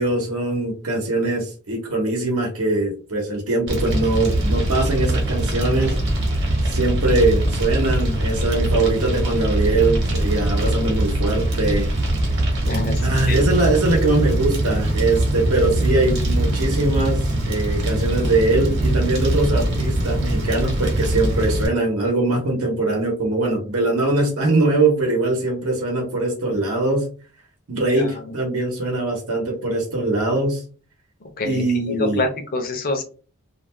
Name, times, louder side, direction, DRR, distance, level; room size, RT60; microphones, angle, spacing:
voice 1, 0.0-6.0 6.6-11.9 13.0-27.1 27.7-30.6 31.4-32.3, right 2 dB, 80° right, 1 dB, 0.8 m, -22 dB
Fire, 3.7-21.7, right 1 dB, 50° right, 0.9 m, -22 dB
voice 2, 12.7-13.0 13.3-13.4 27.9-28.1 31.4-31.6 32.0-33.0, left 2 dB, 40° left, 4 dB, 0.6 m, -25 dB
2.4 x 2.2 x 3.1 m, 0.38 s
head